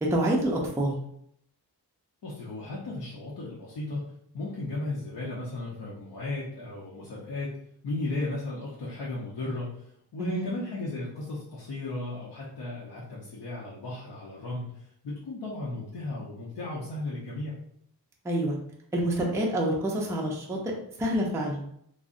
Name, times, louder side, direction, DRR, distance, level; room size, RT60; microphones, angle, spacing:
voice 1, 0.0-1.0 10.2-10.5 18.2-18.6 18.9-20.6 21.0-21.6, right 1 dB, 10° right, -1 dB, 0.3 m, -27 dB
voice 2, 2.2-7.5 7.8-17.6, left 2 dB, 75° left, -6 dB, 0.7 m, -35 dB
2.5 x 2.1 x 3.6 m, 0.69 s
wide cardioid pair, 180°, 40 cm